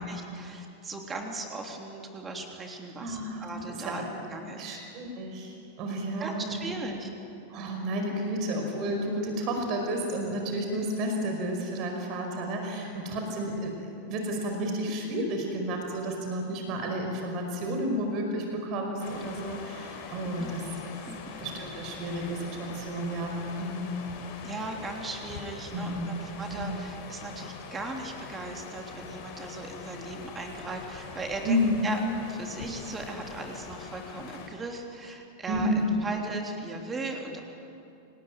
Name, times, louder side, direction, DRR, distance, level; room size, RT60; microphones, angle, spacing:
voice 1, 0.0-4.0 4.3-4.8 6.2-7.1 13.3-13.4 20.2-20.5 21.1-21.4 24.4-32.0 32.3-37.4, right 2 dB, 20° right, 2 dB, 3.2 m, -38 dB
voice 2, 3.0-3.4 3.8-4.0 4.6-6.9 7.5-13.7 14.1-20.7 21.4-24.0 24.4-24.5 25.7-26.2 26.5-26.8 31.4-31.8 35.5-36.0, equal, 40° right, 3 dB, 5.0 m, -31 dB
sound 1, 19.0-34.5, left 5 dB, 45° left, 4.9 m, -43 dB
28.0 x 19.5 x 9.1 m, 2.7 s
figure-of-eight pair, 90°, 0 cm